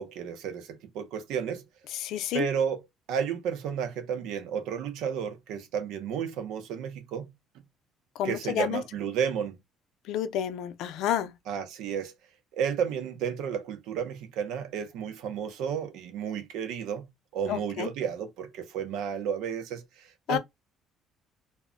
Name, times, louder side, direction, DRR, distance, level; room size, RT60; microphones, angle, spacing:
voice 1, 0.0-1.6 2.3-2.8 3.1-7.3 8.2-9.6 11.5-12.1 12.5-17.1 17.3-20.4, right 7 dB, 80° right, 0.6 m, -32 dB
voice 2, 2.0-2.4 8.2-8.8 10.1-11.3 17.5-17.9 20.3-20.4, left 10 dB, 70° left, 0.4 m, -29 dB
2.1 x 2.1 x 3.6 m
cardioid pair, 155°, 0 cm